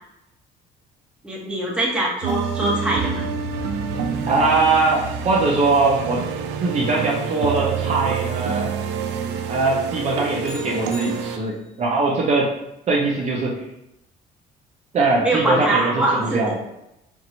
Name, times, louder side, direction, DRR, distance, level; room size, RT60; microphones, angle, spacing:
voice 1, 1.2-3.2 15.2-16.4, right 1 dB, 5° right, -4 dB, 1.2 m, -23 dB
sound 1, 2.2-11.4, right 6 dB, 85° right, 0.4 m, -27 dB
voice 2, 4.3-6.2 6.6-8.7 9.5-12.5 12.9-13.6 14.9-16.5, right 3 dB, 40° right, -3 dB, 0.8 m, -21 dB
sound 2, 10.4-11.9, left 3 dB, 40° left, 0.8 m, -42 dB
4.7 x 2.6 x 2.9 m, 0.84 s
cardioid pair, 110°, 17 cm